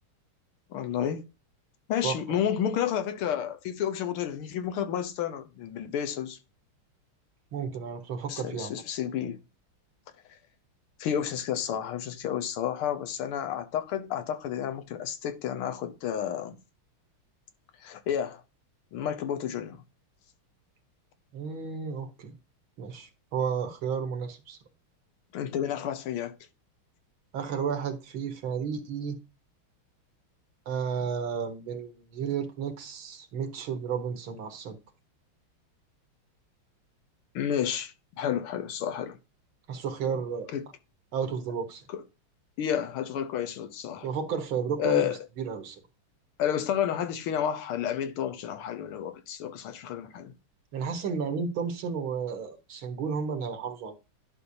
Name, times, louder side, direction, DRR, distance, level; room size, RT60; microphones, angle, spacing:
voice 1, 0.7-1.2 1.9-6.4 8.3-9.4 11.0-16.6 17.8-18.4 18.9-19.8 25.3-26.3 37.4-39.2 40.5-40.7 41.9-42.0 42.6-44.1 44.8-45.2 46.4-50.3, left 9 dB, 85° left, 1.8 m, -31 dB
voice 2, 2.0-2.4 7.5-8.8 21.3-22.3 22.8-24.6 27.3-29.2 30.7-34.8 39.7-40.5 41.1-41.8 44.0-45.1 45.4-45.8 50.7-53.9, right 6 dB, 70° right, 2.1 m, -32 dB
11.0 x 5.5 x 2.7 m
omnidirectional pair, 2.3 m